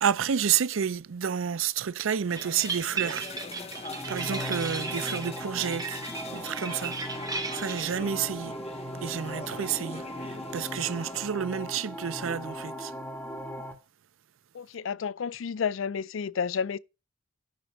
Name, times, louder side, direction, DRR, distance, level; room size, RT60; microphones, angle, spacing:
voice 1, 0.0-3.3 4.1-6.0 6.3-7.0 7.5-8.5 9.0-12.9, right 8 dB, 80° right, 0.5 m, -30 dB
sound 1, 2.3-11.2, left 3 dB, 30° left, 0.9 m, -43 dB
sound 2, 2.3-8.0, right 5 dB, 20° right, 1.1 m, -36 dB
sound 3, 3.7-13.7, equal, 10° left, 1.9 m, -38 dB
voice 2, 14.5-16.8, left 6 dB, 75° left, 0.4 m, -31 dB
11.0 x 4.4 x 6.1 m
head